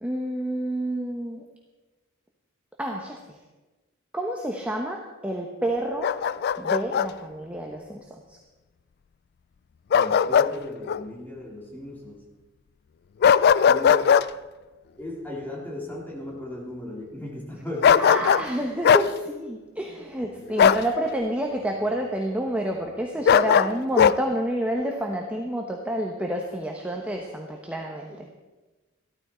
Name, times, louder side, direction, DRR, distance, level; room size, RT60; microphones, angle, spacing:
voice 1, 0.0-1.4 2.8-3.4 4.1-6.1 6.6-8.4 18.0-28.3, right 1 dB, 5° right, 1 dB, 1.0 m, -29 dB
Bark, 6.0-7.1 9.9-10.5 10.9-11.0 13.2-14.3 17.8-18.5 18.8-19.1 20.6-20.9 23.2-24.2, left 7 dB, 55° left, 0.3 m, -18 dB
voice 2, 9.9-12.3 13.6-14.2 15.0-18.5 20.3-20.9 23.3-23.4 28.1-28.3, left 1 dB, 10° left, -3 dB, 3.1 m, -37 dB
14.5 x 13.0 x 4.4 m, 1.2 s
head